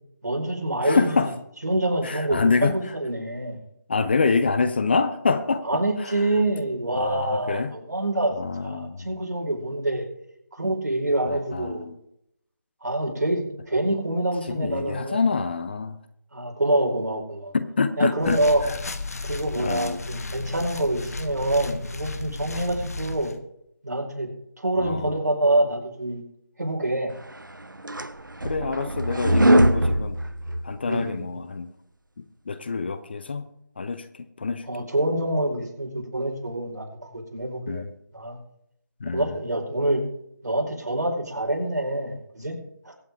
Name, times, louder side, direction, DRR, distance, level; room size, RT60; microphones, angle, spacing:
voice 1, 0.2-1.1 1.6-3.6 5.6-10.0 10.5-11.9 12.8-15.4 16.3-17.5 18.0-18.7 19.2-23.3 23.8-24.3 24.6-26.2 26.6-27.1 30.8-31.2 34.7-37.8 38.1-38.4 39.0-40.0 40.4-42.6 42.8-42.9, right 1 dB, 60° right, 1 dB, 4.7 m, -26 dB
voice 2, 0.8-1.3 2.0-2.8 3.9-6.3 6.9-7.7 8.4-9.1 11.2-12.0 14.5-16.0 17.5-18.4 18.7-18.8 19.6-20.0 24.8-25.1 28.4-30.2 30.6-31.7 32.2-33.5 33.8-34.7 37.7-37.9 39.0-39.3, left 4 dB, 30° left, 10 dB, 0.7 m, -26 dB
sound 1, 18.2-23.4, left 3 dB, 50° left, 1.1 m, -34 dB
sound 2, 27.4-31.1, right 1 dB, 80° right, 0.9 m, -22 dB
23.5 x 8.4 x 3.6 m, 0.75 s
figure-of-eight pair, 160°, 10 cm